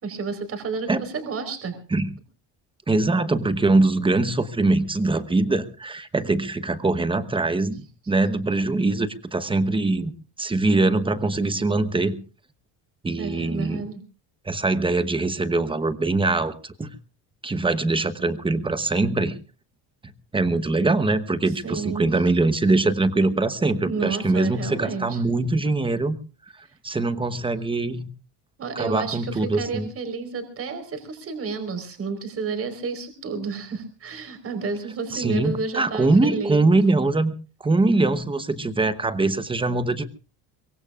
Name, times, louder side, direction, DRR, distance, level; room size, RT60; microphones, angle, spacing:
voice 1, 0.0-1.8 13.2-14.0 21.6-22.3 23.8-25.2 26.6-26.7 28.6-36.8, right 4 dB, 35° right, 7 dB, 4.4 m, -31 dB
voice 2, 2.9-7.8 8.1-10.1 10.4-12.1 13.0-13.8 14.4-16.9 17.4-19.4 20.3-26.2 26.8-28.1 28.8-29.9 35.1-37.3 37.6-40.0, right 2 dB, 10° right, 11 dB, 1.0 m, -22 dB
23.5 x 23.0 x 2.5 m, 0.36 s
cardioid pair, 165°, 42 cm